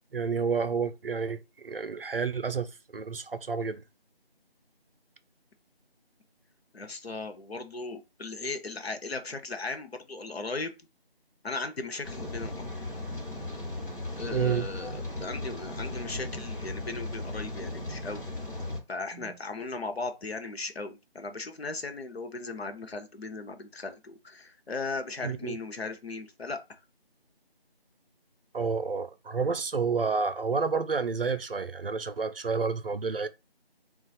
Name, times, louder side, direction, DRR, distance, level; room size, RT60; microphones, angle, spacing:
voice 1, 0.1-3.8 14.3-14.7 19.1-19.4 25.2-25.6 28.5-33.3, right 5 dB, 65° right, 0.4 m, -30 dB
voice 2, 6.7-10.7 11.4-12.7 14.2-18.2 18.9-26.8, left 3 dB, 75° left, 0.7 m, -37 dB
Rain, 12.0-18.8, left 2 dB, 55° left, 1.0 m, -37 dB
3.9 x 2.3 x 2.3 m
figure-of-eight pair, 175°, 31 cm